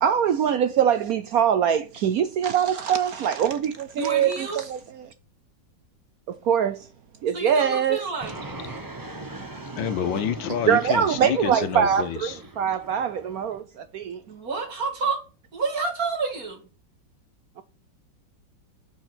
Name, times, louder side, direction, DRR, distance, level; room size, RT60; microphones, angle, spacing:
voice 1, 0.0-5.1 6.3-6.9 7.2-8.0 10.7-14.2, right 8 dB, 70° right, 0.9 m, -23 dB
voice 2, 4.0-4.6 7.3-8.3 14.0-15.2 15.5-16.6, right 4 dB, 50° right, 2.5 m, -29 dB
Fixed-wing aircraft airplane, 8.2-13.6, right 2 dB, 20° right, 0.6 m, -40 dB
voice 3, 9.8-12.4, left 8 dB, 85° left, 1.7 m, -28 dB
9.2 x 5.4 x 6.0 m
omnidirectional pair, 2.0 m